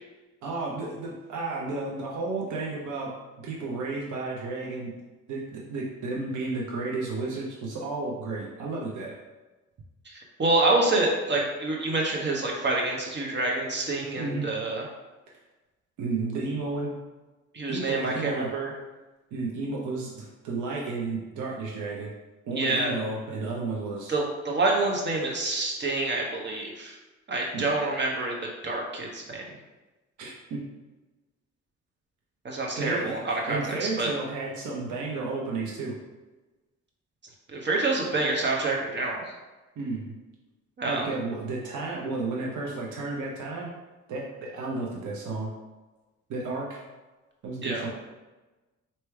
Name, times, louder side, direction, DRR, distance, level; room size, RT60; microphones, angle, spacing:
voice 1, 0.4-3.1 3.4-4.9 5.3-9.1 14.2-14.5 16.0-17.0 17.7-18.5 19.3-22.1 22.5-24.1 27.5-27.7 30.2-30.6 32.8-36.0 39.8-40.1 40.9-43.7 44.1-45.5 46.3-46.8 47.4-47.9, right 3 dB, 75° right, -3 dB, 0.9 m, -32 dB
voice 2, 10.1-14.8 17.5-18.7 22.5-23.0 24.1-27.0 27.3-28.4 28.6-29.4 32.4-34.1 37.5-39.3 40.8-41.0 47.6-47.9, right 2 dB, 35° right, -1 dB, 1.1 m, -27 dB
3.3 x 2.9 x 4.6 m, 1.2 s
cardioid pair, 90°, 30 cm